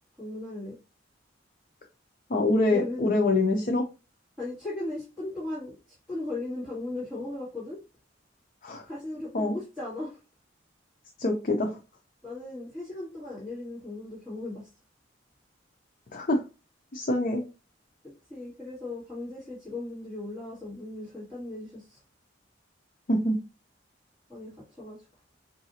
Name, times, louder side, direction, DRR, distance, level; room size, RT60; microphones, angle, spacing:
voice 1, 0.2-0.8 2.6-3.0 4.4-5.8 6.1-7.8 8.9-10.2 12.2-14.7 18.0-22.0 24.3-25.0, left 2 dB, 5° right, -12 dB, 1.9 m, -37 dB
voice 2, 2.3-3.8 8.6-8.8 9.3-9.6 11.2-11.7 16.1-16.4 16.9-17.4 23.1-23.4, left 2 dB, 45° left, 2 dB, 0.5 m, -25 dB
4.7 x 2.6 x 2.7 m, 0.29 s
head